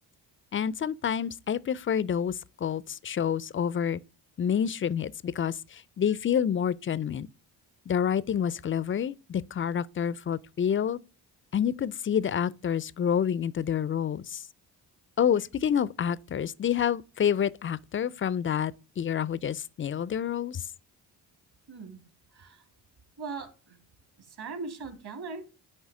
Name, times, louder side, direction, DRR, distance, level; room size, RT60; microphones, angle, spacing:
voice 1, 0.5-4.0 4.4-7.3 7.9-11.0 11.5-14.4 15.2-20.6, left 8 dB, 30° left, 0.4 m, -28 dB
voice 2, 21.7-22.0 22.3-22.6 23.2-23.8 24.2-25.4, right 4 dB, 55° right, 2.6 m, -40 dB
9.7 x 3.3 x 4.8 m
supercardioid pair, 60°, 46 cm